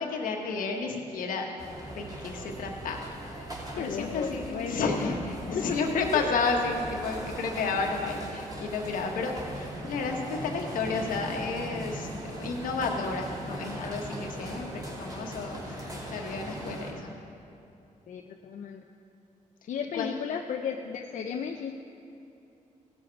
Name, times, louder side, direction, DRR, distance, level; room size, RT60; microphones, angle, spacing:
voice 1, 0.0-1.6 1.9-17.1 19.9-20.1, left 4 dB, 85° left, 2 dB, 1.3 m, -32 dB
sound 1, 1.6-16.9, right 1 dB, 25° right, 2.5 m, -39 dB
voice 2, 3.7-5.0 5.5-5.8 6.1-6.2 15.8-16.0 18.1-18.8 19.7-21.8, left 7 dB, 70° left, 3 dB, 0.6 m, -34 dB
16.5 x 7.1 x 4.7 m, 2.8 s
cardioid pair, 95°, 14 cm